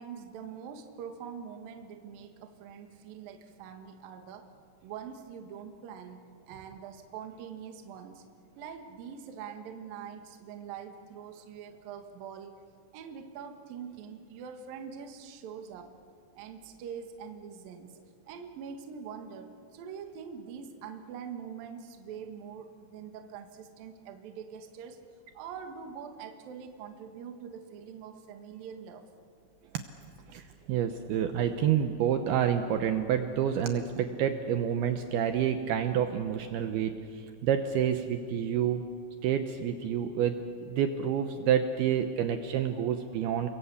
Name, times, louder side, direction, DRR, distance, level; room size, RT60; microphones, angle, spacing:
voice 1, 0.0-4.5 4.8-6.2 6.5-8.3 8.6-12.6 12.9-16.0 16.4-18.0 18.3-25.0 25.3-29.1, right 7 dB, 60° right, 5 dB, 2.7 m, -44 dB
voice 2, 30.3-38.8 39.2-40.4 40.7-43.5, right 9 dB, 80° right, 7 dB, 2.2 m, -28 dB
29.5 x 23.0 x 8.3 m, 2.3 s
omnidirectional pair, 5.8 m